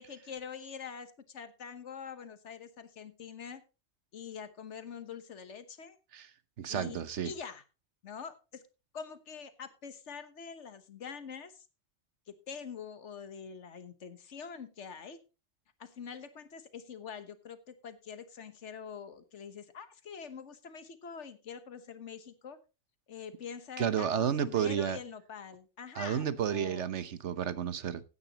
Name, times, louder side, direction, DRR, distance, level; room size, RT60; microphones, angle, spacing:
voice 1, 0.0-3.6 4.1-6.0 6.7-7.6 8.0-8.6 8.9-11.7 12.3-15.2 15.8-22.6 23.1-26.8, left 6 dB, 80° left, 1.5 m, -45 dB
voice 2, 6.6-7.3 23.8-25.0 26.0-28.0, right 8 dB, 80° right, 1.2 m, -31 dB
15.5 x 9.6 x 2.9 m
omnidirectional pair, 1.2 m